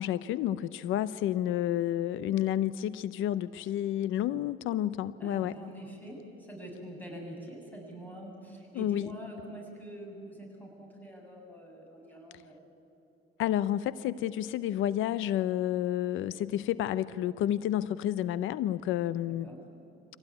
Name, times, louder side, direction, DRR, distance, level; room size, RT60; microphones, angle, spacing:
voice 1, 0.0-5.5 8.8-9.1 13.4-19.5, left 12 dB, 90° left, 16 dB, 0.6 m, -30 dB
voice 2, 5.2-12.6 19.4-19.6, right 1 dB, 10° left, 0 dB, 7.5 m, -45 dB
25.5 x 17.0 x 9.7 m, 3.0 s
cardioid pair, 90°, 20 cm